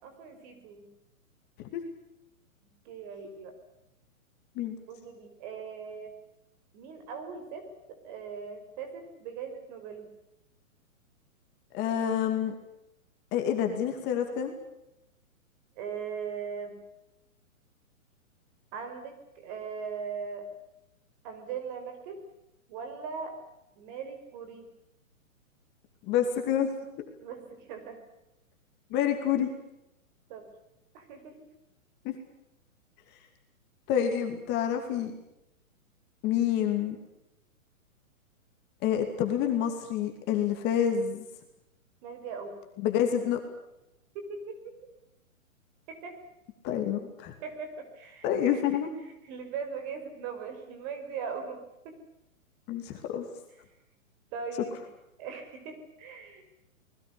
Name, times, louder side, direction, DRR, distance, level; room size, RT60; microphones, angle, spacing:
voice 1, 0.0-0.9 2.9-3.6 4.9-6.1 6.7-10.1 15.8-16.8 18.7-20.5 21.2-22.2 22.7-23.4 23.8-24.7 27.2-28.0 30.3-30.4 30.9-31.5 42.0-42.5 44.1-44.7 45.9-46.2 47.4-48.6 49.0-51.6 51.8-52.0 54.3-54.8 55.2-56.4, right 6 dB, 30° right, 7 dB, 5.5 m, -40 dB
voice 2, 11.7-12.5 13.3-14.5 26.1-26.7 28.9-29.5 32.0-32.2 33.9-35.1 36.2-37.0 38.8-41.2 42.8-43.4 46.6-47.3 48.2-48.9 52.7-53.3, left 9 dB, 25° left, 4 dB, 2.7 m, -28 dB
28.0 x 21.0 x 6.9 m, 0.86 s
hypercardioid pair, 155°, 42 cm